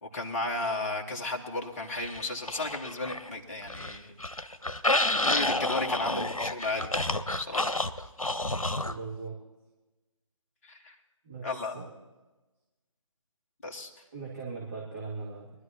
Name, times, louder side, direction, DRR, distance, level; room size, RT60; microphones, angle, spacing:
voice 1, 0.0-4.1 5.3-6.9 7.4-7.7 10.6-11.0 11.4-11.7 13.6-13.9, left 2 dB, 25° left, 1 dB, 1.5 m, -34 dB
sound 1, 1.9-3.3 3.6-9.0, left 1 dB, 85° left, 0.9 m, -30 dB
voice 2, 8.8-9.4 11.2-11.9 14.1-15.5, right 4 dB, 30° right, -5 dB, 2.4 m, -39 dB
23.0 x 12.5 x 2.9 m, 1.1 s
figure-of-eight pair, 150°, 17 cm